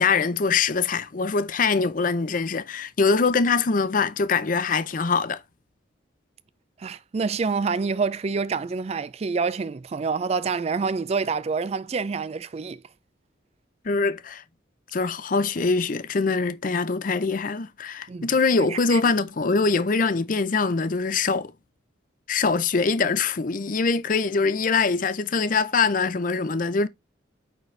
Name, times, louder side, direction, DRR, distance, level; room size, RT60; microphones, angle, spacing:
voice 1, 0.0-5.4 13.8-14.4 14.9-21.5 22.3-26.9, left 4 dB, 45° left, 0.5 m, -23 dB
voice 2, 6.8-12.8 18.1-18.3 18.7-19.0, right 5 dB, 35° right, 0.3 m, -27 dB
9.1 x 4.0 x 3.2 m
head